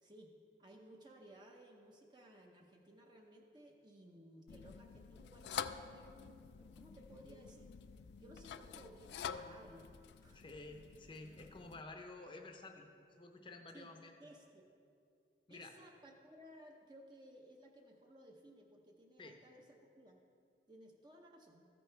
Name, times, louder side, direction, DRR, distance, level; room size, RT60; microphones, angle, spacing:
voice 1, 0.0-0.3 0.6-7.7 8.2-9.9 10.2-10.4 13.7-13.9 14.2-14.7 15.5-20.2 20.7-21.6, right 1 dB, 25° right, 0 dB, 0.6 m, -59 dB
sound 1, 4.5-11.8, left 7 dB, 70° left, 0.3 m, -48 dB
voice 2, 10.3-12.9 13.2-14.1 15.5-15.7 19.2-19.4, left 2 dB, 30° left, 4 dB, 0.6 m, -51 dB
14.0 x 5.4 x 4.4 m, 2.5 s
head